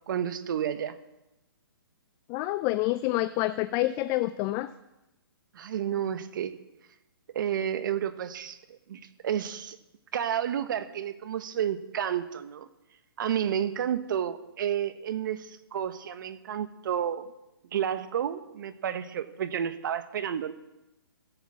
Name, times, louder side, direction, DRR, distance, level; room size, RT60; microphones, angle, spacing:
voice 1, 0.1-1.0 5.5-6.5 7.3-9.8 10.1-12.7 13.2-17.3 17.7-20.5, right 9 dB, 55° right, 12 dB, 1.1 m, -31 dB
voice 2, 2.3-4.7, left 17 dB, 20° left, 13 dB, 0.3 m, -27 dB
15.0 x 8.0 x 7.3 m, 0.96 s
hypercardioid pair, 145°, 13 cm